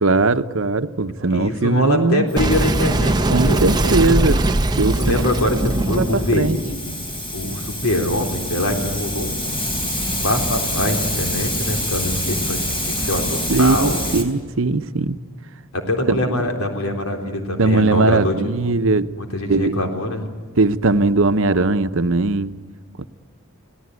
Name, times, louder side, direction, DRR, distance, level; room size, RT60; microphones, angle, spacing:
voice 1, 0.0-2.3 3.3-4.4 4.8-5.2 5.5-6.6 13.5-15.2 16.1-16.4 17.6-19.1 19.5-19.8 20.6-22.5 23.0-23.1, right 3 dB, 70° right, 10 dB, 0.9 m, -19 dB
voice 2, 1.3-3.1 3.5-4.3 4.8-6.9 7.3-9.5 10.1-14.0 15.7-18.3 19.2-20.3, left 1 dB, 90° left, 3 dB, 3.7 m, -23 dB
Hiss, 2.3-14.2, left 1 dB, 25° left, 4.0 m, -27 dB
Boom, 2.4-7.6, right 2 dB, 20° right, 0.8 m, -21 dB
29.5 x 18.0 x 9.6 m, 1.5 s
head